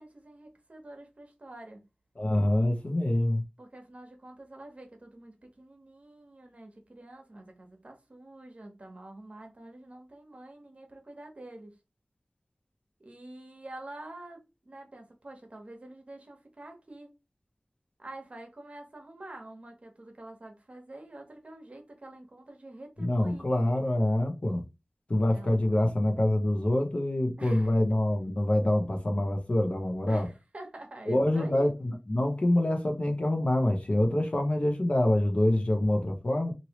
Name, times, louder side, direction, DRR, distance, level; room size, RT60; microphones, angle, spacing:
voice 1, 0.0-1.8 3.6-11.8 13.0-17.1 18.0-23.5 25.2-25.7 27.4-27.8 30.1-31.7, right 2 dB, 55° right, 1.0 m, -47 dB
voice 2, 2.1-3.4 23.0-24.6 25.1-30.3 31.1-36.5, left 1 dB, 50° left, 0.9 m, -26 dB
3.1 x 2.7 x 2.9 m
wide cardioid pair, 55°, 3 cm